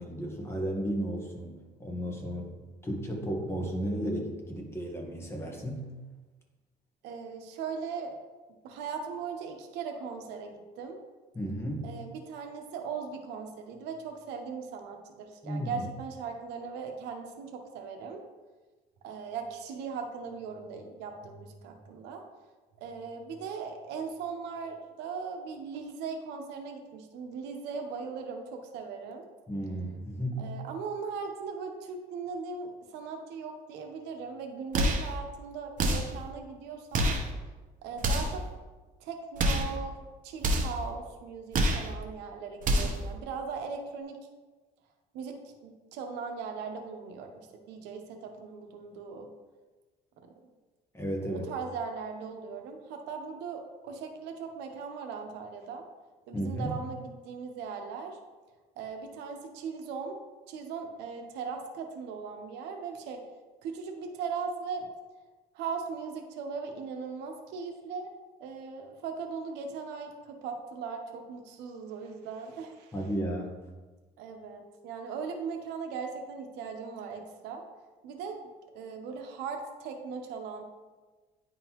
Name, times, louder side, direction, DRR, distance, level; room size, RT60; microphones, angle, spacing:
voice 1, 0.0-2.5 2.8-5.8 11.3-11.9 15.4-15.9 29.5-30.5 50.9-51.5 56.3-56.7 72.9-73.6, right 1 dB, 15° left, -1 dB, 1.4 m, -34 dB
voice 2, 7.0-8.1 8.6-11.0 11.8-18.2 19.0-22.2 22.8-29.2 30.4-37.1 37.8-38.4 39.0-44.2 45.1-49.3 51.3-55.8 56.3-58.2 58.8-60.2 60.5-63.2 63.6-64.9 65.5-68.1 68.4-72.9 74.2-77.6 78.0-78.4 78.7-80.6, right 5 dB, 90° right, 4 dB, 0.8 m, -39 dB
sound 1, 34.7-35.1 35.8-36.2 36.9-37.3 38.0-38.4 39.4-39.7 40.4-40.8 41.5-41.9 42.6-43.0, right 1 dB, 50° right, 1.0 m, -27 dB
9.9 x 3.8 x 3.0 m, 1.3 s
cardioid pair, 110°, 17 cm